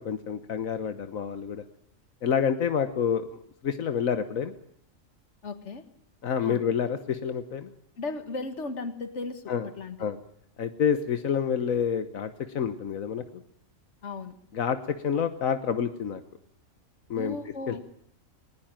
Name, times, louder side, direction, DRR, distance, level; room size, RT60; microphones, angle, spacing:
voice 1, 0.0-1.6 2.2-3.3 3.6-4.5 6.2-7.7 9.5-9.7 10.0-10.2 10.6-13.4 14.5-16.2 17.1-17.4 17.7-17.8, left 7 dB, 80° left, 10 dB, 1.5 m, -28 dB
voice 2, 5.4-5.9 6.4-6.6 8.0-10.0 14.0-14.4 17.2-17.8, left 3 dB, 55° left, 10 dB, 2.0 m, -36 dB
20.0 x 20.0 x 9.0 m, 0.68 s
omnidirectional pair, 1.4 m